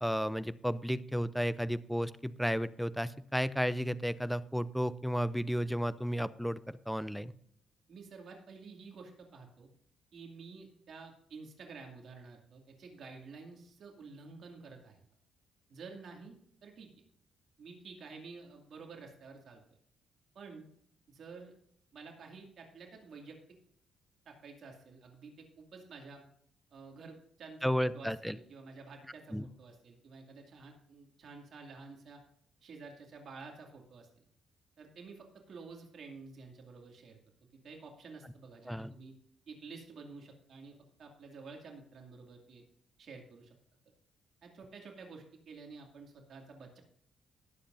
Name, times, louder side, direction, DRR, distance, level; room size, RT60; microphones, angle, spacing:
voice 1, 0.0-7.3 27.6-28.4 29.3-29.5 38.7-38.9, equal, ahead, 16 dB, 0.5 m, -33 dB
voice 2, 7.9-9.7 10.1-15.0 15.7-16.3 16.6-16.9 17.6-19.6 20.3-20.7 21.1-21.5 21.9-23.4 24.3-26.2 26.7-32.2 32.6-34.1 34.8-37.2 37.5-39.1 39.5-42.6 43.0-43.5 44.4-46.8, right 4 dB, 60° right, 2 dB, 2.3 m, -50 dB
19.0 x 7.6 x 2.6 m, 0.65 s
cardioid pair, 115°, 0 cm